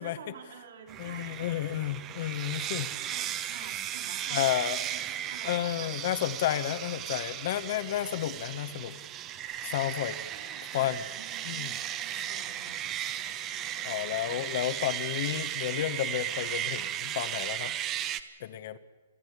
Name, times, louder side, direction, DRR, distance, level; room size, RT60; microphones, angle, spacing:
voice 1, 0.0-1.6 2.4-6.0 8.5-8.7 10.3-12.8 13.1-13.3, right 6 dB, 65° right, 2 dB, 4.6 m, -49 dB
sound 1, 0.9-18.2, right 11 dB, 25° right, 1.0 m, -36 dB
voice 2, 1.0-3.2 4.3-4.8 5.4-9.0 9.6-10.2 10.7-11.0 11.4-11.7 13.8-17.7 18.4-18.8, left 12 dB, 50° left, 12 dB, 1.1 m, -31 dB
28.0 x 10.5 x 9.5 m, 1.3 s
hypercardioid pair, 150°, 0 cm